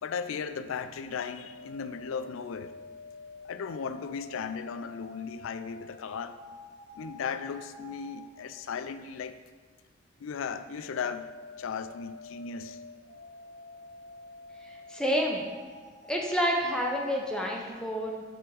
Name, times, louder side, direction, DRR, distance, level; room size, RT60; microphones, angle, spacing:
voice 1, 0.0-2.7 3.4-6.4 6.9-9.4 10.2-11.3 11.6-12.8, left 6 dB, 80° left, 11 dB, 0.4 m, -36 dB
sound 1, 1.0-8.4 10.4-17.7, left 3 dB, 40° left, 1.2 m, -48 dB
voice 2, 14.6-15.4 16.1-18.2, equal, 5° left, 0 dB, 0.7 m, -29 dB
7.7 x 3.6 x 4.8 m, 1.5 s
head